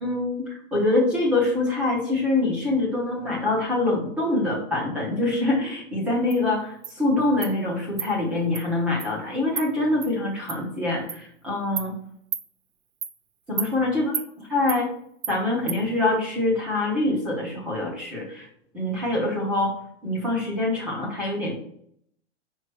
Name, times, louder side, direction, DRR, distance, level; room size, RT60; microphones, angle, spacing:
voice 1, 0.0-11.9 13.5-14.1 14.5-14.9 15.3-18.5 18.7-19.7 20.0-21.5, left 2 dB, 5° right, -4 dB, 0.5 m, -25 dB
Insect, 6.3-6.4 6.8-6.9 7.4-7.5 8.0-8.1 8.5-8.6 9.0-9.1 9.6-9.7 10.0-10.1 10.5-10.6 11.1-11.2 11.8-11.9 12.3-12.5 13.0-13.1 13.6-13.7 14.1-14.3 14.7-14.8 15.2-15.4 15.7-15.8, right 8 dB, 45° right, 0.6 m, -31 dB
5.1 x 4.6 x 5.8 m, 0.68 s
supercardioid pair, 180°, 35 cm